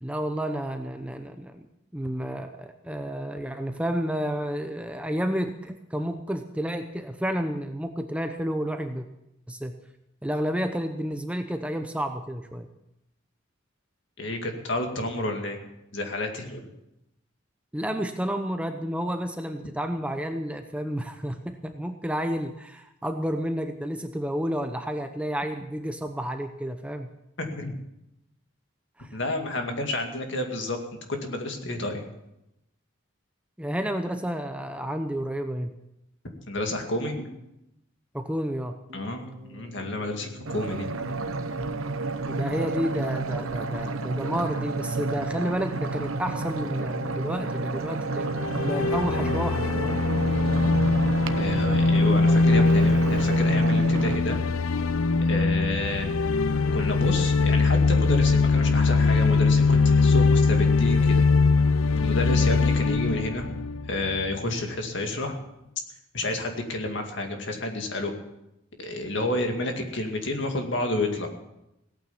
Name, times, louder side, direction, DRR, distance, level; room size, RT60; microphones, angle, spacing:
voice 1, 0.0-1.6 1.9-9.1 9.5-9.7 10.2-12.7 17.7-27.1 29.0-29.2 33.6-35.7 38.1-38.8 42.2-50.0 52.6-52.7, equal, 5° right, 6 dB, 0.7 m, -30 dB
voice 2, 14.2-15.6 15.9-16.7 27.4-27.7 29.1-30.8 31.1-32.0 36.5-37.3 38.9-41.0 51.4-54.4 55.2-56.4 56.7-61.2 62.0-63.5 63.9-65.4 66.1-68.1 68.8-71.3, left 2 dB, 60° left, 3 dB, 2.2 m, -30 dB
Keyboard (musical), 38.9-53.9, right 2 dB, 35° right, 2.4 m, -42 dB
sound 1, 40.5-54.2, right 3 dB, 80° right, 0.9 m, -31 dB
sound 2, 48.3-64.4, left 3 dB, 85° left, 0.6 m, -22 dB
17.0 x 9.1 x 7.1 m, 0.87 s
head